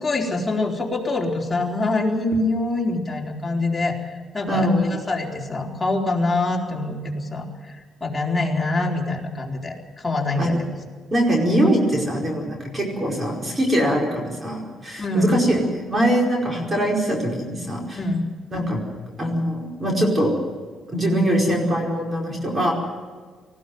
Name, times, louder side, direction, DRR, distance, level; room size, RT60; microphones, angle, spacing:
voice 1, 0.0-10.7 15.0-15.4 17.9-18.3, left 2 dB, 20° left, -2 dB, 4.2 m, -25 dB
voice 2, 4.5-4.9 10.4-10.6 11.1-18.0 18.5-18.8 19.2-20.3 20.9-22.7, equal, 25° right, 0 dB, 5.0 m, -22 dB
19.5 x 15.5 x 9.4 m, 1.5 s
cardioid pair, 90°, 0 cm